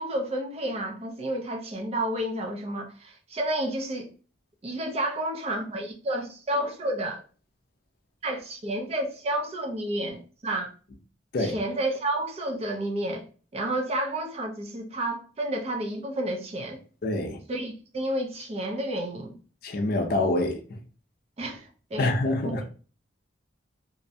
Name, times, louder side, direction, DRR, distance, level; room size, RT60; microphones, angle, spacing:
voice 1, 0.0-4.1 4.6-7.2 8.2-10.7 11.4-13.3 13.5-16.8 17.5-19.4 21.4-22.1 22.4-22.7, right 1 dB, 35° right, 0.4 m, -30 dB
voice 2, 17.0-17.4 19.6-20.6 22.0-22.6, left 2 dB, 55° left, 0.4 m, -26 dB
2.5 x 2.0 x 2.6 m
head